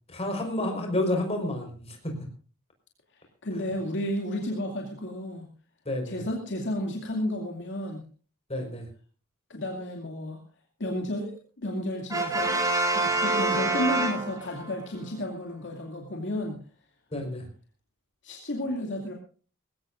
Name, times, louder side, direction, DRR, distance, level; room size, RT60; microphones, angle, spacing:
voice 1, 0.1-2.1 3.5-3.6 5.8-6.2 8.5-8.9 17.1-17.5, left 1 dB, 30° left, 3 dB, 4.8 m, -30 dB
voice 2, 3.4-5.5 6.0-8.0 9.5-10.4 10.8-12.6 12.9-16.6 18.2-19.1, left 1 dB, 55° left, 1 dB, 2.5 m, -32 dB
Brass instrument, 12.1-14.8, right 2 dB, 15° right, 2.9 m, -26 dB
20.5 x 16.5 x 2.6 m, 0.40 s
head